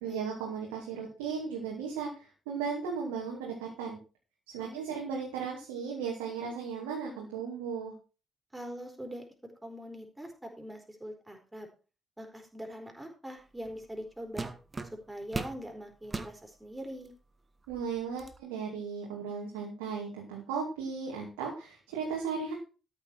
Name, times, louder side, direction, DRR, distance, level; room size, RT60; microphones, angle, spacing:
voice 1, 0.0-4.0 4.5-7.9 17.7-22.5, right 6 dB, 75° right, -2 dB, 2.5 m, -36 dB
voice 2, 4.6-4.9 8.5-9.2 9.6-11.7 12.2-14.5 15.1-17.1, equal, 15° right, 3 dB, 4.4 m, -43 dB
sound 1, 13.7-13.8 14.4-15.6 16.0-16.4 17.1-17.2 17.6-18.4, right 3 dB, 30° right, 1.5 m, -38 dB
13.0 x 7.6 x 4.6 m, 0.34 s
figure-of-eight pair, 40°, 0 cm